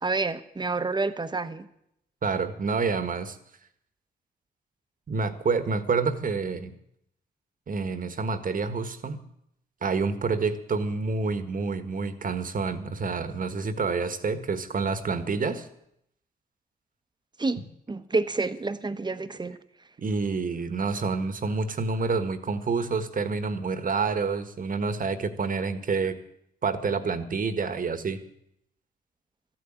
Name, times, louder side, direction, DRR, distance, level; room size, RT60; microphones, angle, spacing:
voice 1, 0.0-1.7 17.4-17.6 17.9-19.6, right 3 dB, 25° right, 12 dB, 1.1 m, -28 dB
voice 2, 2.2-3.4 5.1-6.7 7.7-9.2 9.8-15.7 20.0-26.2 26.6-28.2, right 4 dB, 50° right, 10 dB, 1.5 m, -28 dB
13.5 x 9.2 x 8.9 m, 0.76 s
cardioid pair, 65°, 18 cm